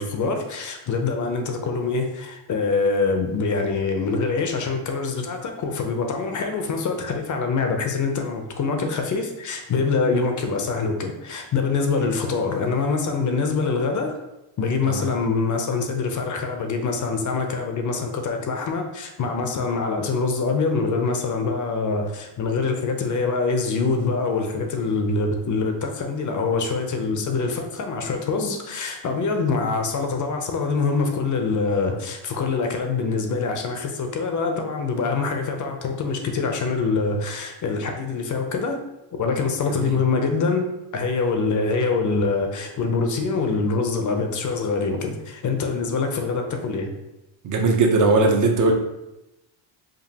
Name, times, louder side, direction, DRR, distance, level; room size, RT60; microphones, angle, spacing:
voice 1, 0.0-14.2 14.6-38.8 39.2-46.9, left 4 dB, 40° left, 4 dB, 0.6 m, -24 dB
voice 2, 47.4-48.7, right 3 dB, 40° right, 2 dB, 0.7 m, -19 dB
5.2 x 2.5 x 2.8 m, 0.94 s
cardioid pair, 115°, 48 cm